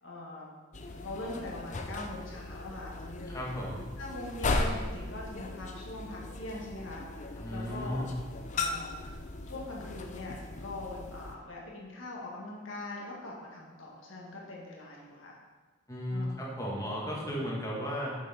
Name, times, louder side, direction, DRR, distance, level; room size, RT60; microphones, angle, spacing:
voice 1, 0.0-0.5 1.0-3.5 4.0-8.0 8.5-8.9 9.5-15.4 16.1-16.4 17.1-17.3, left 2 dB, 65° left, -3 dB, 2.0 m, -42 dB
sound 1, 0.7-11.3, left 2 dB, 35° left, 0.6 m, -37 dB
voice 2, 3.3-3.8 7.4-8.1 15.9-18.2, equal, 15° left, -4 dB, 1.7 m, -35 dB
7.5 x 7.1 x 4.3 m, 1.4 s
head